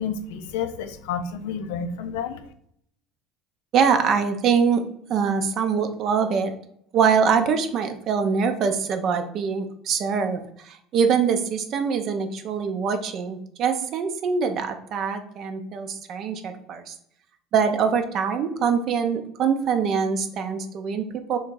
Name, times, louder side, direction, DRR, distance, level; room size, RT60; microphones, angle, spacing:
voice 1, 0.0-2.4, left 6 dB, 80° left, 9 dB, 0.4 m, -30 dB
voice 2, 3.7-4.8 5.1-6.5 6.9-16.9 17.5-21.4, right 6 dB, 50° right, 7 dB, 0.5 m, -23 dB
2.9 x 2.7 x 3.6 m, 0.68 s
supercardioid pair, 105°, 0 cm